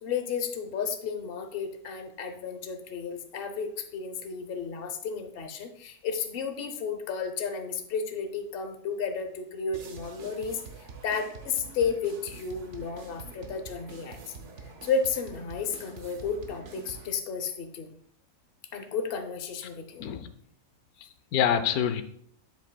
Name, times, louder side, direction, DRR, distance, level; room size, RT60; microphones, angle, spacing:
voice 1, 0.0-14.3 14.8-18.0 18.7-20.1, left 5 dB, 45° left, 6 dB, 0.9 m, -33 dB
sound 1, 9.7-17.1, right 4 dB, 60° right, 1.1 m, -46 dB
voice 2, 20.0-20.3 21.0-22.0, left 9 dB, 85° left, 10 dB, 1.1 m, -26 dB
8.0 x 7.2 x 2.2 m, 0.64 s
omnidirectional pair, 1.5 m